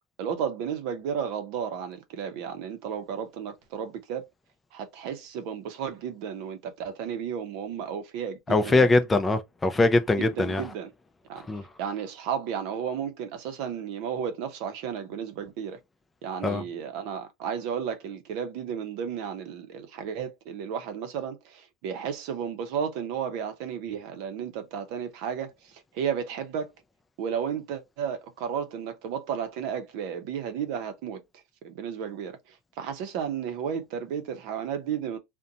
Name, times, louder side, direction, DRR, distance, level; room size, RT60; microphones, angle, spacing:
voice 1, 0.2-4.3 4.7-8.9 10.2-10.9 11.3-11.4 11.8-15.8 16.2-26.7 27.2-31.2 31.6-35.2, right 8 dB, 65° right, 0.6 m, -33 dB
voice 2, 8.5-10.6 11.5-11.6 16.4-16.6, left 2 dB, 15° left, 0.4 m, -22 dB
2.6 x 2.1 x 2.7 m
supercardioid pair, 115°, 0 cm